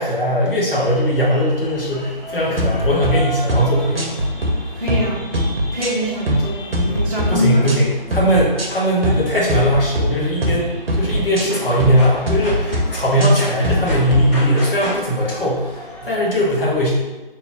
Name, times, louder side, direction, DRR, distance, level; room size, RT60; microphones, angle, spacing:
voice 1, 0.0-4.1 7.3-16.9, equal, 70° left, -5 dB, 1.2 m, -19 dB
sound 1, 0.7-16.2, equal, 15° left, 0.9 m, -34 dB
sound 2, 2.6-3.1 3.5-3.7 4.0-4.5 4.9-5.1 5.3-6.4 6.7-7.3 7.6-7.8 8.1-8.7 9.0-9.2 9.5-10.1 10.4-10.6 10.9-11.4 11.8-12.0 12.3-12.8 13.2-14.2, equal, 80° right, 0.7 m, -20 dB
voice 2, 4.7-5.3 5.7-7.7, left 1 dB, 45° right, -6 dB, 0.6 m, -23 dB
2.9 x 2.3 x 3.4 m, 1.2 s
figure-of-eight pair, 155°, 29 cm